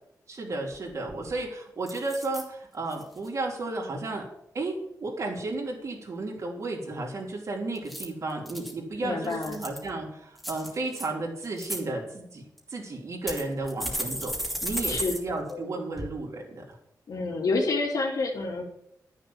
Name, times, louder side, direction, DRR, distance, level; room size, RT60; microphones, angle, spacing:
voice 1, 0.3-4.2 4.5-12.4 12.7-16.6, right 2 dB, 50° right, -1 dB, 3.8 m, -33 dB
sound 1, 0.7-0.8 1.1-1.4 1.9-2.4 2.9-3.3 7.7-8.7 9.2-9.9 10.4-11.1 11.4-11.8 12.6-12.7 13.3-15.2 15.5-15.6 16.0-16.1, equal, ahead, 2.8 m, -34 dB
voice 2, 9.0-9.6 14.9-15.1 15.5-15.7 17.1-18.6, left 3 dB, 65° left, 1 dB, 3.1 m, -28 dB
13.0 x 6.8 x 7.4 m, 0.76 s
wide cardioid pair, 170°, 7 cm